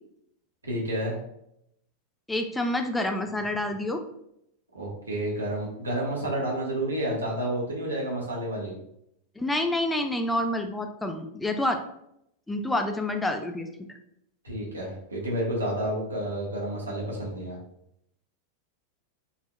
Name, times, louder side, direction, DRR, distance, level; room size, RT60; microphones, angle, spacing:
voice 1, 0.6-1.2 4.7-8.7 14.4-17.6, right 1 dB, 75° right, -3 dB, 1.2 m, -30 dB
voice 2, 2.3-4.0 9.4-11.8 12.5-13.9, left 1 dB, 5° left, 5 dB, 0.4 m, -28 dB
5.5 x 2.8 x 2.3 m, 0.77 s
figure-of-eight pair, 90°, 0 cm